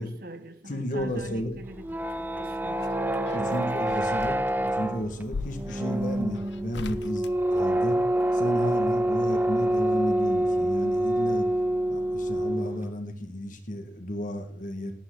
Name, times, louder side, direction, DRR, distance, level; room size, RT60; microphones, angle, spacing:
voice 1, 0.0-3.0 3.3-3.7, right 1 dB, 55° right, 9 dB, 1.2 m, -44 dB
voice 2, 0.7-1.5 3.3-8.0 8.3-11.5 11.9-14.9, equal, 45° left, 6 dB, 1.9 m, -33 dB
sound 1, 1.0-12.4, right 2 dB, 70° right, 1.0 m, -51 dB
sound 2, 1.7-12.9, right 1 dB, 10° right, 0.4 m, -26 dB
sound 3, 2.2-8.3 9.7-10.5 10.8-10.9, left 3 dB, 75° left, 0.6 m, -42 dB
13.0 x 11.5 x 4.0 m, 0.63 s
head